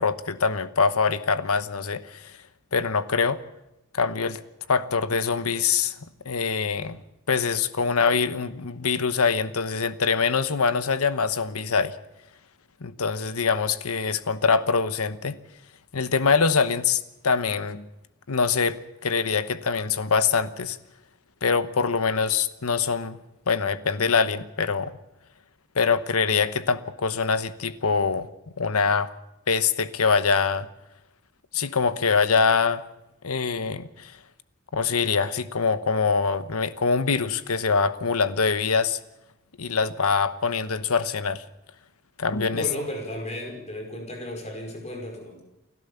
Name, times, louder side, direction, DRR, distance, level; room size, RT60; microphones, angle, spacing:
voice 1, 0.0-2.4 2.7-3.4 3.9-4.4 4.7-5.9 6.2-7.0 7.3-12.0 12.8-15.4 15.9-17.9 18.3-20.8 21.4-23.2 23.5-25.0 25.7-28.3 28.6-29.1 29.5-30.7 31.5-32.8 33.2-34.2 34.7-39.0 39.6-41.4 42.2-42.7, left 5 dB, 85° left, 13 dB, 1.1 m, -24 dB
voice 2, 42.5-45.4, left 1 dB, 30° left, 2 dB, 5.1 m, -34 dB
29.5 x 12.5 x 7.1 m, 0.92 s
head